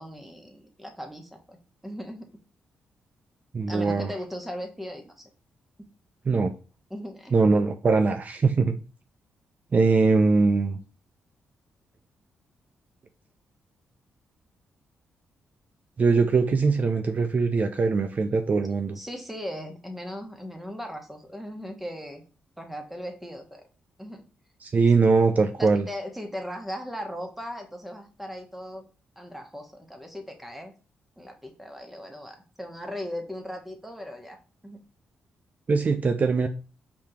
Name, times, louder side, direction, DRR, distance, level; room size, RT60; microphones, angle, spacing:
voice 1, 0.0-1.6 1.8-2.3 3.7-5.3 5.8-5.9 6.9-7.5 18.9-22.2 22.6-23.6 24.0-24.3 25.6-28.9 29.2-30.7 31.2-34.4 34.6-34.8, equal, 5° right, 4 dB, 1.1 m, -38 dB
voice 2, 3.5-4.1 6.3-6.5 7.3-8.8 9.7-10.8 16.0-19.0 24.6-25.8 35.7-36.5, right 4 dB, 45° right, 7 dB, 0.5 m, -22 dB
4.8 x 3.5 x 2.9 m, 0.34 s
cardioid pair, 60°, 4 cm